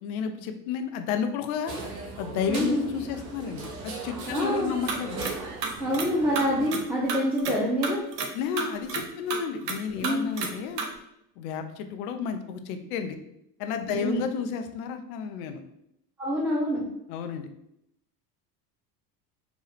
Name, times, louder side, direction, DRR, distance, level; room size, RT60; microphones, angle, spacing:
voice 1, 0.0-1.7 2.2-5.3 8.3-10.8 11.4-13.2 13.6-15.6 17.1-17.5, left 7 dB, 60° left, 7 dB, 0.6 m, -32 dB
sound 1, 1.7-6.7, right 3 dB, 50° right, 0.9 m, -38 dB
voice 2, 2.5-2.8 4.3-4.7 5.8-8.0 10.0-10.2 13.9-14.2 16.2-16.9, equal, 5° right, -5 dB, 0.3 m, -26 dB
sound 2, 4.9-5.3 5.6-6.1 6.4-7.6 7.8-8.3 8.6-9.0 9.3-9.8 10.0-10.5 10.8-10.9, right 5 dB, 75° right, 0.7 m, -30 dB
2.9 x 2.2 x 3.2 m, 0.78 s
hypercardioid pair, 70°, 48 cm